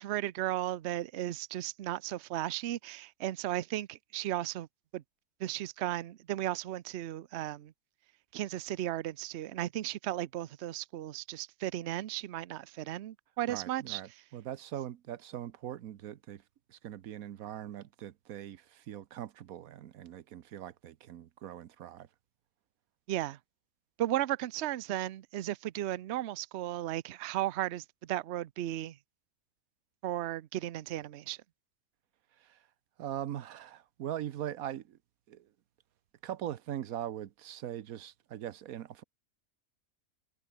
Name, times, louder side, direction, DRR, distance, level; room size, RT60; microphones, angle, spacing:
voice 1, 0.0-4.7 4.9-5.0 5.4-7.7 8.3-14.2 23.1-23.4 24.0-29.0 30.0-31.4, right 13 dB, 60° right, 0.8 m, -35 dB
voice 2, 13.5-16.4 16.7-22.1 32.4-32.6 33.0-35.0 35.3-35.5 36.2-39.0, right 11 dB, 90° right, 1.3 m, -41 dB
omnidirectional pair, 1.5 m